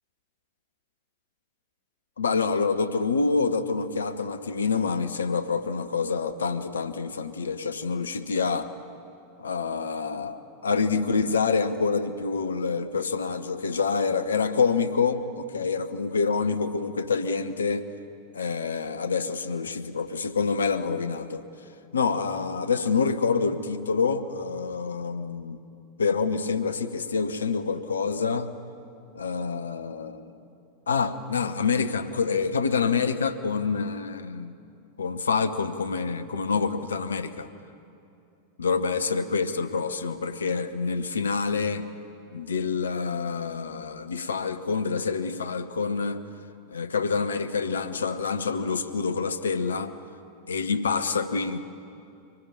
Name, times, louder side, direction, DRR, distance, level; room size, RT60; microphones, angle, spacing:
voice 1, 2.2-8.7 9.4-17.8 18.3-21.4 21.9-25.6 26.0-28.5 29.1-30.3 30.9-34.6 35.0-37.5 38.6-41.9 42.3-46.2 46.7-49.9 50.5-51.6, left 5 dB, 70° left, 11 dB, 1.1 m, -27 dB
25.0 x 20.0 x 8.8 m, 2.7 s
figure-of-eight pair, 90°, 0 cm